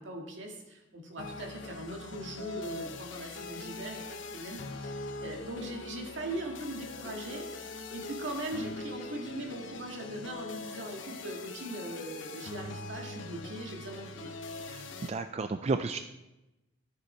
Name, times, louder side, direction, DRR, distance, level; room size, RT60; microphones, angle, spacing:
voice 1, 0.0-4.0 4.3-14.3, right 1 dB, 70° right, 1 dB, 1.9 m, -40 dB
sound 1, 1.2-15.1, left 2 dB, 75° left, 0.9 m, -42 dB
voice 2, 14.7-16.0, right 3 dB, 35° right, 9 dB, 0.3 m, -33 dB
13.0 x 6.9 x 4.5 m, 0.99 s
head